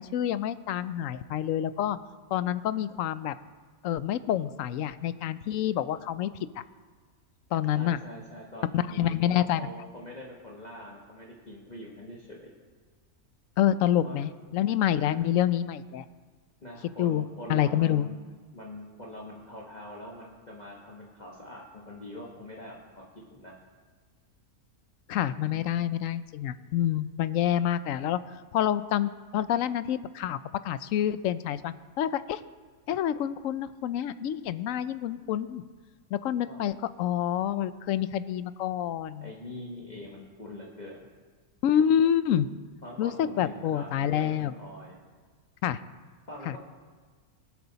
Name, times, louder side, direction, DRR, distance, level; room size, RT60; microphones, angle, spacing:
voice 1, 0.0-2.0 2.3-3.3 3.8-6.3 7.5-8.0 8.7-9.6 13.6-16.0 17.0-17.2 17.5-18.1 25.1-28.2 28.5-30.4 30.6-32.4 32.9-35.6 36.1-39.3 41.6-42.5 43.0-44.5 45.6-45.8 46.5-46.6, left 10 dB, 70° left, 14 dB, 0.9 m, -27 dB
voice 2, 7.7-12.5 14.0-14.2 16.6-18.2 18.5-23.5 36.5-36.6 39.2-41.0 42.8-45.0 46.3-46.6, left 1 dB, 30° left, -3 dB, 1.5 m, -43 dB
23.5 x 8.2 x 4.0 m, 1.5 s
omnidirectional pair, 1.5 m